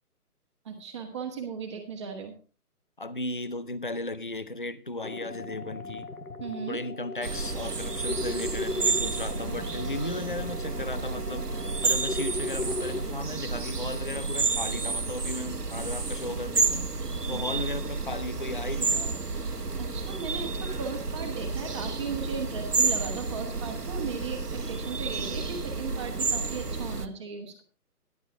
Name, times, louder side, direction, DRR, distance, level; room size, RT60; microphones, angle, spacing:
voice 1, 0.6-2.3 6.4-6.8 17.2-17.4 19.8-27.6, right 5 dB, 20° right, 1.7 m, -37 dB
voice 2, 3.0-6.1 6.7-16.9 17.3-19.2, left 2 dB, 35° left, 0.5 m, -35 dB
sound 1, 5.0-13.0, left 2 dB, 70° left, 1.5 m, -37 dB
sound 2, 7.2-27.1, right 4 dB, 75° right, 1.2 m, -31 dB
13.5 x 11.0 x 3.6 m
figure-of-eight pair, 150°, 47 cm